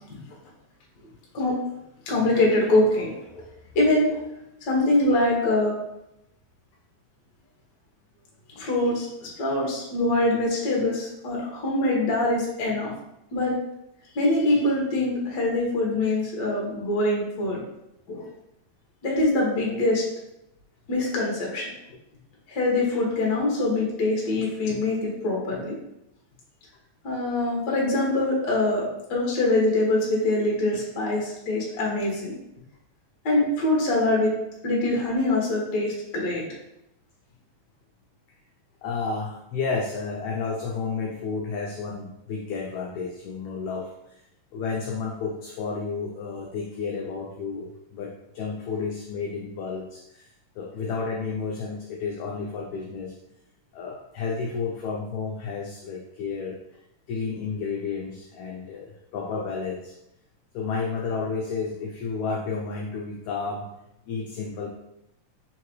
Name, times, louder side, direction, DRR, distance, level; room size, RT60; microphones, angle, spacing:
voice 1, 2.1-3.4 3.7-4.2 4.6-5.7 8.6-9.1 9.4-12.9 13.3-13.5 14.1-17.6 18.1-18.3 19.0-20.0 20.9-21.7 22.5-25.7 27.0-28.8 29.1-32.3 33.2-34.3 34.6-36.4, left 2 dB, 65° left, -3 dB, 1.0 m, -24 dB
voice 2, 38.8-44.2 44.5-50.3 50.6-53.2 53.7-56.6 57.1-59.9 60.5-63.7 64.1-64.7, left 4 dB, 85° left, -1 dB, 1.6 m, -31 dB
4.5 x 3.7 x 3.0 m, 0.85 s
omnidirectional pair, 3.8 m